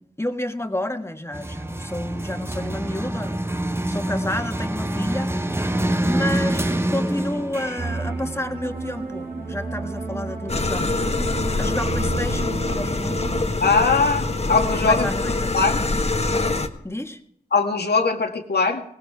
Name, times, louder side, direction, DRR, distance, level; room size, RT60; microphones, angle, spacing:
voice 1, 0.0-3.4 3.9-5.3 6.0-10.9 11.6-13.3 14.8-15.8 16.8-17.2, left 1 dB, 15° left, 5 dB, 1.6 m, -30 dB
sound 1, 1.3-9.3, right 1 dB, 15° right, 1.0 m, -26 dB
sound 2, 7.8-13.5, right 3 dB, 70° right, 2.4 m, -31 dB
sound 3, 10.5-16.7, left 2 dB, 40° left, 1.4 m, -24 dB
voice 2, 13.6-15.1 15.5-15.8 17.5-18.8, left 4 dB, 75° left, 4 dB, 1.8 m, -20 dB
18.0 x 15.5 x 3.6 m, 0.76 s
cardioid pair, 40°, 17 cm